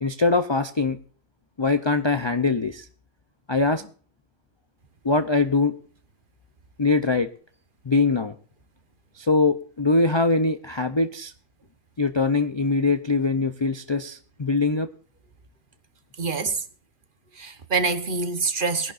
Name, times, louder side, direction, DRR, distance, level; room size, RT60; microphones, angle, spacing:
voice 1, 0.0-1.0 1.6-2.9 3.5-3.9 5.0-5.8 6.8-7.3 7.8-8.3 9.2-11.3 12.0-14.9, left 3 dB, 40° left, 0.3 m, -22 dB
voice 2, 16.2-16.6 17.4-18.9, right 4 dB, 40° right, 1.0 m, -25 dB
21.5 x 11.0 x 2.5 m
omnidirectional pair, 1.5 m